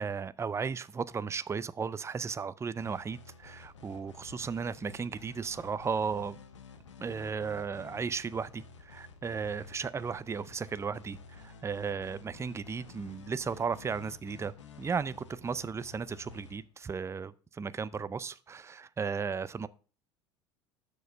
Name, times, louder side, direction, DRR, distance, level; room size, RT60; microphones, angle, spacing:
voice 1, 0.0-6.4 7.0-19.7, right 5 dB, 20° right, 0.5 m, -35 dB
sound 1, 2.8-16.9, left 5 dB, 90° left, 0.9 m, -52 dB
6.7 x 6.4 x 5.2 m
hypercardioid pair, 75°, 15 cm